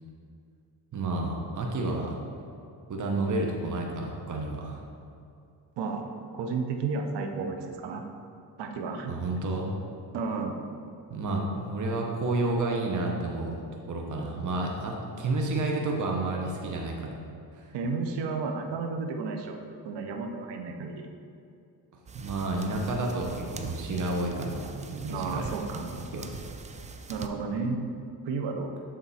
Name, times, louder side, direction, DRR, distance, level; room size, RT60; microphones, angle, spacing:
voice 1, 0.9-2.1 2.9-4.8 9.1-9.7 11.1-13.6 13.9-17.2 17.5-17.7 22.1-25.5 26.1-26.3, right 2 dB, 45° right, 0 dB, 0.9 m, -30 dB
voice 2, 5.8-8.0 8.6-9.2 10.1-10.6 17.7-19.6 19.8-21.1 25.1-25.9 27.1-27.8 28.2-28.7, right 4 dB, 75° right, 4 dB, 0.8 m, -32 dB
sound 1, 22.1-27.3, right 4 dB, 20° right, 0.3 m, -43 dB
7.3 x 3.7 x 4.1 m, 2.5 s
cardioid pair, 75°, 43 cm